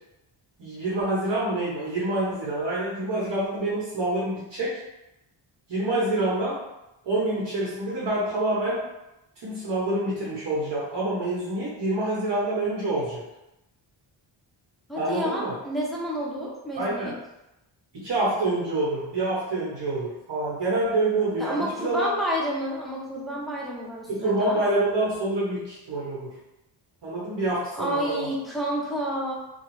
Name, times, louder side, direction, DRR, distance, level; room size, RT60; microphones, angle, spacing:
voice 1, 0.6-4.8 5.7-6.6 7.0-8.9 9.4-13.2 14.9-15.5 16.8-17.1 17.9-22.1 24.1-26.3 27.0-28.3, right 2 dB, 55° right, -6 dB, 1.1 m, -27 dB
voice 2, 14.9-17.1 21.4-24.6 27.7-29.4, equal, ahead, -4 dB, 0.7 m, -30 dB
3.0 x 2.3 x 3.1 m, 0.93 s
cardioid pair, 80°, 48 cm